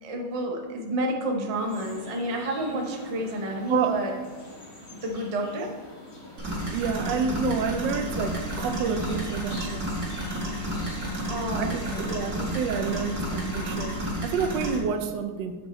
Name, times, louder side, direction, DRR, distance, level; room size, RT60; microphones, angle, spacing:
voice 1, 0.0-4.1 5.0-5.8 11.1-12.0, right 1 dB, 35° right, 1 dB, 0.5 m, -30 dB
sound 1, 1.5-14.0, left 2 dB, 55° left, 2.2 m, -45 dB
sound 2, 6.4-14.8, equal, 65° right, 2.4 m, -31 dB
voice 2, 6.7-9.9 11.6-15.6, right 6 dB, 85° right, 8 dB, 1.3 m, -29 dB
sound 3, 8.0-14.0, left 1 dB, 80° left, 3.3 m, -47 dB
7.3 x 5.4 x 4.2 m, 1.4 s
omnidirectional pair, 1.9 m